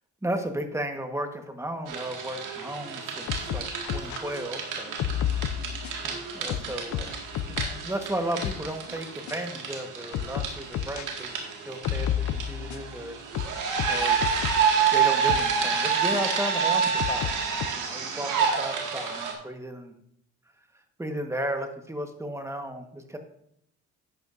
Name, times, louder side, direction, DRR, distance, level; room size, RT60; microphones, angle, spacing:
voice 1, 0.2-5.4 6.0-7.2 7.5-11.4 11.6-14.2 14.9-19.9 21.0-23.2, right 1 dB, 10° right, 5 dB, 1.4 m, -34 dB
sound 1, 1.9-19.3, right 6 dB, 90° right, 2.1 m, -29 dB
sound 2, 3.3-4.2 5.0-6.1 6.5-7.8 8.2-8.7 9.3-9.4 10.1-11.1 11.8-12.9 13.3-14.7 15.3-15.5 16.1-16.2 17.0-17.7, left 11 dB, 70° left, 0.5 m, -31 dB
12.0 x 8.8 x 2.6 m, 0.73 s
cardioid pair, 90°, 30 cm